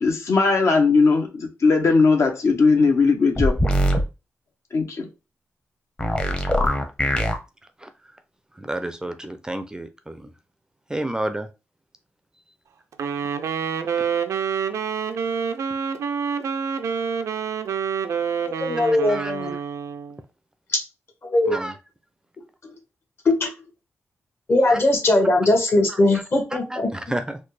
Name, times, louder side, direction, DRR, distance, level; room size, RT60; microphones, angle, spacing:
voice 1, 0.0-3.5 4.7-5.1, left 4 dB, 70° left, 3 dB, 0.9 m, -18 dB
sound 1, 3.4-4.0 6.0-7.3, equal, 20° left, 0.8 m, -21 dB
voice 2, 8.6-10.3 10.9-11.5 18.8-19.3 21.5-21.7 24.7-24.8 25.9-26.0 26.5-27.4, right 1 dB, 15° right, 9 dB, 0.4 m, -30 dB
Wind instrument woodwind instrument, 12.9-20.2, right 6 dB, 80° right, 0.4 m, -27 dB
voice 3, 18.4-19.5 21.2-21.6 23.2-23.5 24.5-26.9, left 2 dB, 50° left, 3 dB, 1.2 m, -20 dB
4.1 x 2.3 x 3.2 m, 0.28 s
cardioid pair, 90°, 5 cm